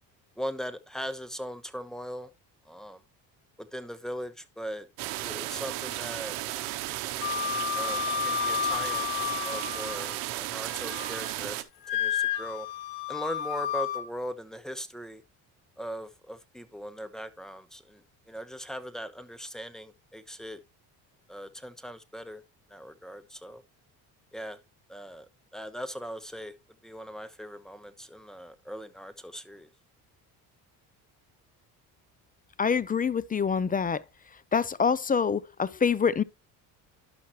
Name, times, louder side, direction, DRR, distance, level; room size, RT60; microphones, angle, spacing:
voice 1, 0.4-2.3 2.6-3.0 3.6-4.9 5.2-6.4 7.8-9.1 9.4-12.7 13.1-15.2 15.8-20.6 21.3-22.4 22.7-23.6 24.3-24.6 24.9-26.5 26.8-29.7, equal, ahead, 1.0 m, -39 dB
sound 1, 5.0-11.6, right 16 dB, 90° right, 0.8 m, -34 dB
Wind instrument woodwind instrument, 7.2-10.2 10.6-11.3 11.8-14.0, left 9 dB, 85° left, 1.2 m, -31 dB
voice 2, 32.6-34.0 34.5-36.2, left 6 dB, 20° left, 0.4 m, -26 dB
11.5 x 5.7 x 3.0 m
supercardioid pair, 70°, 43 cm